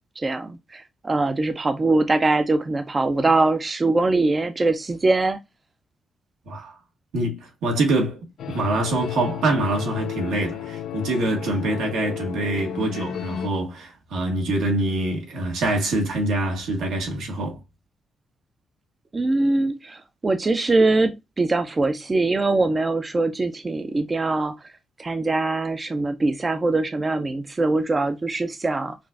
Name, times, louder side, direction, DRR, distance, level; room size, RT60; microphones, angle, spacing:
voice 1, 0.2-5.4 19.1-24.5 25.0-29.0, right 2 dB, 20° right, 0.3 m, -22 dB
voice 2, 7.1-8.2 8.5-17.6, right 2 dB, 80° right, 1.5 m, -25 dB
sound 1, 8.4-13.5, left 10 dB, 65° left, 0.5 m, -33 dB
5.8 x 2.4 x 2.3 m
cardioid pair, 170°, 0 cm